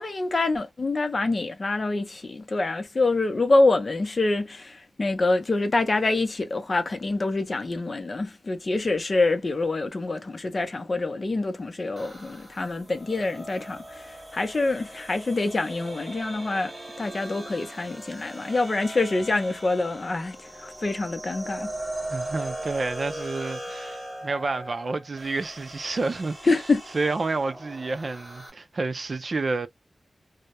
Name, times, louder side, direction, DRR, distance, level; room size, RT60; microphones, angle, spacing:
voice 1, 0.0-16.7 17.0-21.7 26.5-26.8, left 2 dB, 45° left, 0.6 m, -26 dB
sound 1, 12.0-28.5, right 1 dB, 15° right, 1.2 m, -39 dB
voice 2, 22.1-26.4 26.9-29.7, right 3 dB, 50° right, 0.4 m, -29 dB
2.2 x 2.0 x 2.8 m
wide cardioid pair, 75°, 0 cm